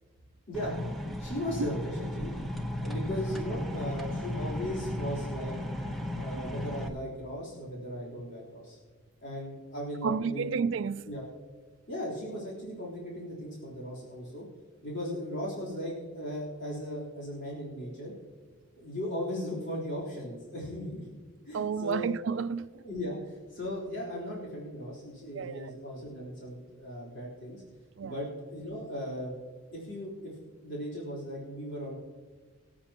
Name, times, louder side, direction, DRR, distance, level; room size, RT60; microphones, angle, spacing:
sound 1, 0.5-6.9, left 1 dB, ahead, 0.9 m, -35 dB
voice 1, 1.2-2.3 2.8-5.6 6.1-8.8 9.2-10.6 11.1-11.3 11.9-14.5 14.8-18.1 18.8-21.1 21.5-22.1 22.8-27.6 28.0-29.3 29.7-30.3 30.6-31.9, equal, 60° left, 3.7 m, -37 dB
voice 2, 10.0-11.1 21.5-22.8 25.3-25.8 28.0-28.1, right 6 dB, 65° right, 0.4 m, -31 dB
24.5 x 8.6 x 2.9 m
head